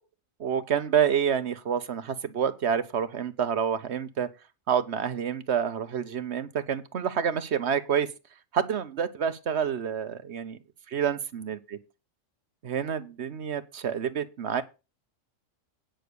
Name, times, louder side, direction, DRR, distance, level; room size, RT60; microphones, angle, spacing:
voice 1, 0.4-4.3 4.7-8.1 8.5-10.6 10.9-11.8 12.6-14.6, right 8 dB, 60° right, 1.1 m, -28 dB
9.0 x 6.4 x 6.9 m
omnidirectional pair, 1.4 m